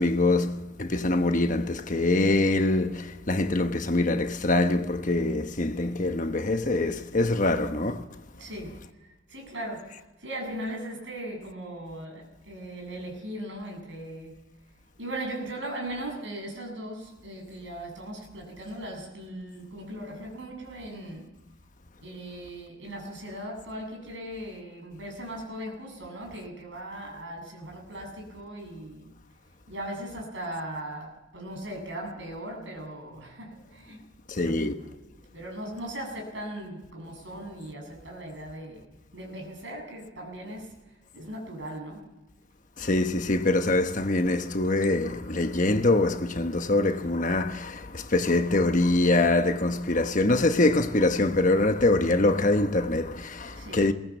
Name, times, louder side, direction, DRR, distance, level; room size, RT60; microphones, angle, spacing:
voice 1, 0.0-8.0 34.3-34.7 42.8-53.9, left 2 dB, 40° left, 1.2 m, -24 dB
voice 2, 8.4-14.4 15.0-21.3 22.0-29.1 29.7-34.0 34.3-34.6 35.0-38.8 39.1-42.0 53.5-53.8, right 1 dB, 70° right, 7.7 m, -38 dB
21.5 x 18.5 x 7.4 m
head